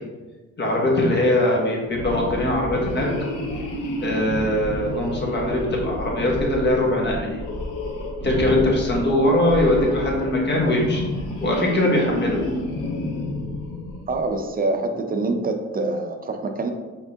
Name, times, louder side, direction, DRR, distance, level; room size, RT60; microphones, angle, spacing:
voice 1, 0.6-3.1 4.0-7.4 8.2-11.0 11.4-12.4, left 1 dB, 35° left, -2 dB, 1.3 m, -21 dB
sound 1, 1.9-14.4, left 1 dB, 90° left, 0.8 m, -30 dB
voice 2, 14.1-16.7, right 2 dB, 30° right, 6 dB, 0.5 m, -25 dB
4.7 x 3.7 x 2.7 m, 1.3 s
cardioid pair, 90°, 30 cm